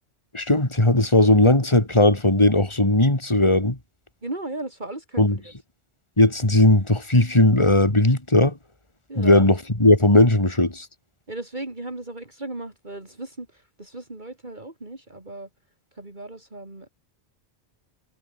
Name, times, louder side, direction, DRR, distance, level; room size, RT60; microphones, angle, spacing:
voice 1, 0.3-3.8 5.2-5.4 6.2-8.5 9.2-10.9, left 1 dB, 25° left, 3.4 m, -18 dB
voice 2, 4.2-5.5 9.1-9.5 11.3-15.5 15.9-16.9, right 2 dB, 45° right, 4.0 m, -36 dB
omnidirectional pair, 1.1 m